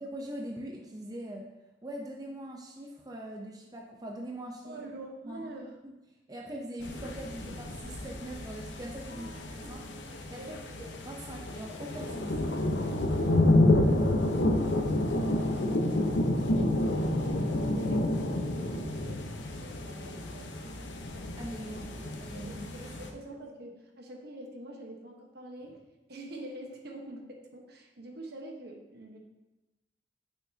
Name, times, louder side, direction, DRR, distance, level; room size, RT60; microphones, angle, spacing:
voice 1, 0.1-1.5 1.8-4.8 5.2-5.5 6.3-9.9 10.3-12.3 21.4-22.9, right 1 dB, 20° right, 0 dB, 0.7 m, -42 dB
voice 2, 4.6-5.8 9.1-10.9 13.6-14.7 15.2-17.1 17.4-21.0 21.6-22.0 22.3-25.8 26.1-29.2, right 1 dB, 60° right, 1 dB, 1.2 m, -46 dB
sound 1, 6.8-23.1, left 1 dB, 80° left, 0.9 m, -29 dB
9.4 x 6.4 x 2.8 m, 1.0 s
head